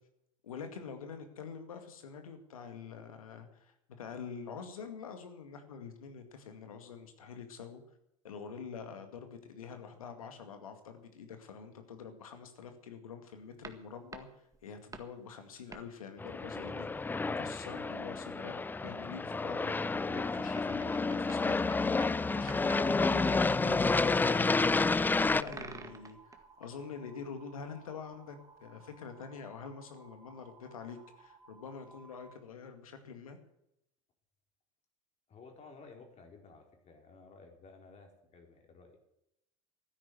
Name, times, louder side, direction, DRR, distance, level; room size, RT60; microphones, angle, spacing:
voice 1, 0.4-7.8 8.2-17.0 17.4-18.5 18.8-21.7 22.3-33.4, left 6 dB, 85° left, 7 dB, 2.2 m, -46 dB
sound 1, 13.6-15.2 15.7-16.0 19.7-22.2 22.5-22.9 25.4-26.7 28.1-28.2, right 4 dB, 20° right, 1.8 m, -49 dB
Aircraft, 16.2-25.4, left 3 dB, 10° left, 0.4 m, -30 dB
sound 2, 25.0-32.3, right 4 dB, 35° right, 4.0 m, -59 dB
voice 2, 35.3-39.0, left 4 dB, 40° left, 3 dB, 4.4 m, -55 dB
13.0 x 10.0 x 7.9 m, 0.83 s
hypercardioid pair, 80°, 17 cm